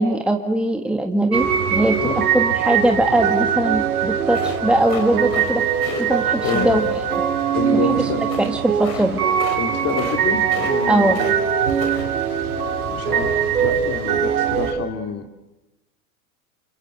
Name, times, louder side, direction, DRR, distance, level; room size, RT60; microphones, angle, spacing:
voice 1, 0.0-2.0 2.3-5.6 6.0-7.0 7.7-8.1 8.4-9.2 10.9-11.2, right 1 dB, ahead, 3 dB, 1.7 m, -21 dB
sound 1, 1.3-14.7, right 8 dB, 85° right, 4.7 m, -22 dB
voice 2, 1.9-2.2 6.4-6.8 7.5-8.2 9.6-11.3 12.9-15.3, left 6 dB, 35° left, 6 dB, 2.4 m, -27 dB
sound 2, 4.3-5.5 5.8-6.0 6.4-6.7 8.2-8.5 8.8-9.1 9.3-9.6 9.9-10.2 10.5-11.3 11.7-12.0, left 6 dB, 70° left, 5.8 m, -33 dB
28.5 x 25.0 x 7.9 m, 1.1 s
hypercardioid pair, 105°, 43 cm